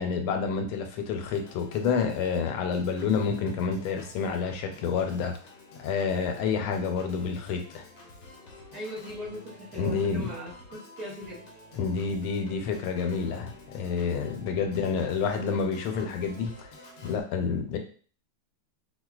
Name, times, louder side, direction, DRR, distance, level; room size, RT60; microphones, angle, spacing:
voice 1, 0.0-5.4 5.8-7.8 9.8-10.3 11.8-16.7 17.0-17.8, left 5 dB, 90° left, 4 dB, 1.5 m, -29 dB
Organ, 1.2-17.2, left 2 dB, 65° left, 1.3 m, -50 dB
voice 2, 8.7-11.5, equal, 65° right, -5 dB, 1.0 m, -40 dB
4.6 x 2.2 x 2.3 m, 0.43 s
omnidirectional pair, 2.3 m